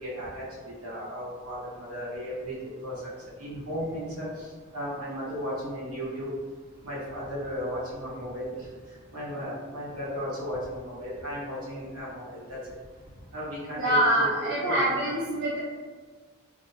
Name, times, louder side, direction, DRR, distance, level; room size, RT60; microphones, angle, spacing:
voice 1, 0.0-2.6 2.8-2.9 3.4-4.5 4.7-6.3 6.8-8.7 9.1-12.6 13.3-14.9, equal, 80° right, -8 dB, 1.2 m, -35 dB
voice 2, 13.8-15.6, right 1 dB, 55° right, -7 dB, 0.5 m, -25 dB
2.5 x 2.2 x 3.2 m, 1.4 s
head